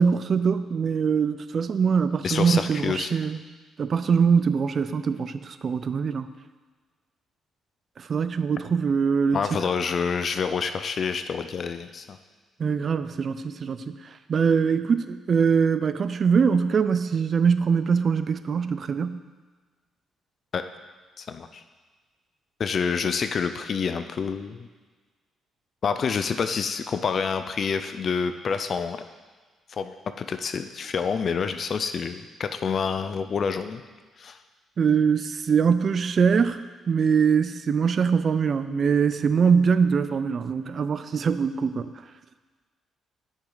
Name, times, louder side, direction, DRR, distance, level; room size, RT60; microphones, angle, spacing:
voice 1, 0.0-3.4 3.8-6.3 8.0-9.5 12.6-13.9 14.3-19.2 34.8-36.6 36.9-41.9, right 6 dB, 50° right, 12 dB, 0.4 m, -23 dB
voice 2, 2.2-3.1 9.3-12.2 20.5-20.6 21.2-21.6 22.6-24.7 25.8-29.0 29.7-33.8 34.2-34.4, left 6 dB, 50° left, 9 dB, 0.4 m, -28 dB
7.0 x 6.3 x 3.9 m, 1.4 s
cardioid pair, 90°, 0 cm